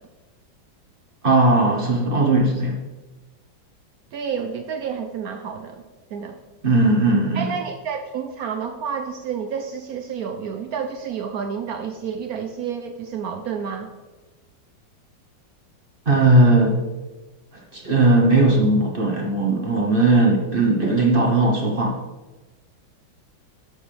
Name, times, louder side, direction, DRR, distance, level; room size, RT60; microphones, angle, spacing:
voice 1, 1.2-2.8 6.6-7.5 16.1-16.8 17.7-22.0, right 2 dB, 35° right, 0 dB, 1.0 m, -18 dB
voice 2, 4.1-5.8 6.1-6.4 7.3-13.9, right 7 dB, 80° right, 7 dB, 0.8 m, -30 dB
11.5 x 7.5 x 3.3 m, 1.2 s
omnidirectional pair, 2.2 m